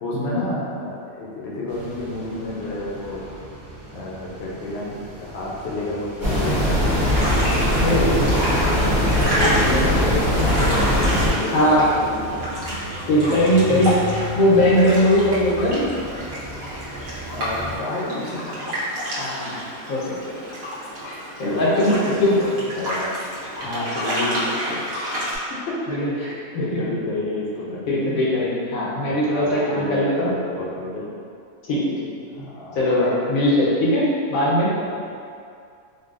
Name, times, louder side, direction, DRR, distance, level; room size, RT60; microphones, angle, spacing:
voice 1, 0.0-3.2 3.9-6.9 7.9-8.8 9.1-12.8 13.7-13.8 17.3-18.8 21.4-23.1 25.5-28.2 28.8-31.1 32.3-32.8 34.9-35.0, left 2 dB, 60° left, -5 dB, 0.8 m, -30 dB
sound 1, 1.7-17.8, right 1 dB, 45° right, 0.6 m, -37 dB
sound 2, 6.2-11.3, equal, ahead, 0.9 m, -20 dB
sound 3, 7.0-25.4, equal, 80° right, 1.3 m, -29 dB
voice 2, 7.8-8.3 11.5-11.8 13.1-15.9 19.1-19.6 19.9-20.1 21.0-22.4 23.6-24.8 25.9-26.3 26.5-26.8 27.9-30.3 31.7-31.9 32.7-34.0 34.3-34.7, left 1 dB, 90° left, -7 dB, 1.2 m, -20 dB
3.9 x 2.3 x 2.4 m, 2.4 s
omnidirectional pair, 1.4 m